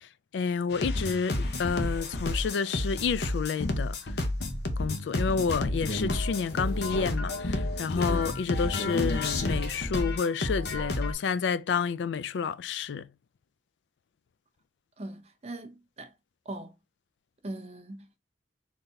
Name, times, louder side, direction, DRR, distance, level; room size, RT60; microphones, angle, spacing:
voice 1, 0.0-4.2 4.8-13.1, left 6 dB, 90° left, 0.3 m, -30 dB
sound 1, 0.7-11.1, left 2 dB, 65° left, 0.8 m, -30 dB
voice 2, 15.0-16.1 16.5-16.7 17.4-18.1, right 2 dB, 35° right, 0.6 m, -40 dB
4.0 x 2.8 x 3.3 m
head